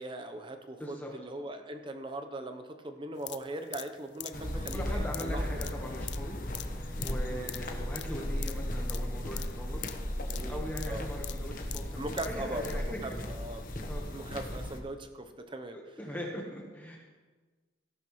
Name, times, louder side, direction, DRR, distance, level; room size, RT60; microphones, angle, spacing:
voice 1, 0.0-5.4 7.3-7.5 10.2-11.1 12.0-13.6 14.1-15.8, right 1 dB, 25° right, 7 dB, 0.9 m, -40 dB
voice 2, 0.8-1.1 4.3-9.8 10.5-12.8 13.1-13.2 13.9-14.1 15.7-17.0, equal, 10° left, -1 dB, 1.3 m, -41 dB
sound 1, 3.2-12.8 13.1-13.2, left 15 dB, 70° left, 0.5 m, -44 dB
sound 2, 4.3-14.8, left 1 dB, 45° left, 1.2 m, -36 dB
17.0 x 11.5 x 3.2 m, 1.4 s
head